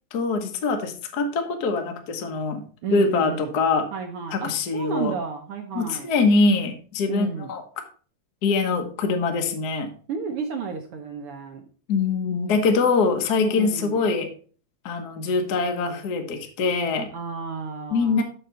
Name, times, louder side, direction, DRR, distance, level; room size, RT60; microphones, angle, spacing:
voice 1, 0.1-2.6 2.9-3.9 4.3-5.1 5.7-7.8 8.4-9.9 11.9-14.3 14.8-17.1 17.9-18.2, left 4 dB, 60° left, 4 dB, 1.0 m, -23 dB
voice 2, 2.8-3.5 3.9-6.1 7.1-7.5 10.1-11.6 13.4-14.0 17.1-18.2, right 5 dB, 70° right, 4 dB, 1.4 m, -32 dB
6.9 x 6.6 x 4.3 m, 0.40 s
omnidirectional pair, 3.4 m